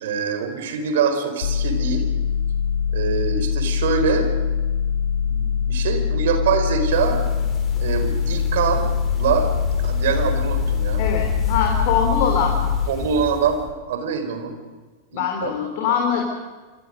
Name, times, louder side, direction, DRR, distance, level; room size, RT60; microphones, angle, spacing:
voice 1, 0.0-2.1 2.9-4.3 5.3-7.2 7.8-8.9 9.2-9.5 9.8-11.0 12.9-13.6 13.9-14.5 15.1-15.5, right 6 dB, 55° right, 6 dB, 4.6 m, -24 dB
sound 1, 1.4-12.9, left 7 dB, 65° left, 0.9 m, -23 dB
sound 2, 6.9-13.7, left 4 dB, 20° left, 5.1 m, -32 dB
voice 2, 11.0-12.6 15.1-16.2, left 7 dB, 50° left, 2 dB, 3.6 m, -22 dB
27.0 x 27.0 x 5.3 m, 1.3 s
figure-of-eight pair, 90°, 0 cm